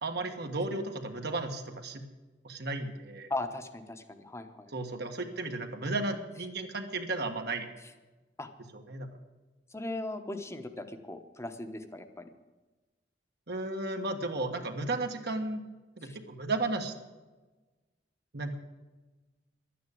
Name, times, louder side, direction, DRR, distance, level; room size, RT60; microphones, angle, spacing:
voice 1, 0.0-2.0 2.4-3.3 4.7-7.7 8.7-9.1 13.5-15.6 16.0-16.9 18.3-18.6, right 2 dB, 60° right, 4 dB, 1.6 m, -34 dB
voice 2, 3.3-4.7 8.4-8.5 9.7-12.3 16.0-16.2, left 2 dB, 15° left, 8 dB, 1.1 m, -38 dB
12.0 x 9.3 x 8.5 m, 1.2 s
head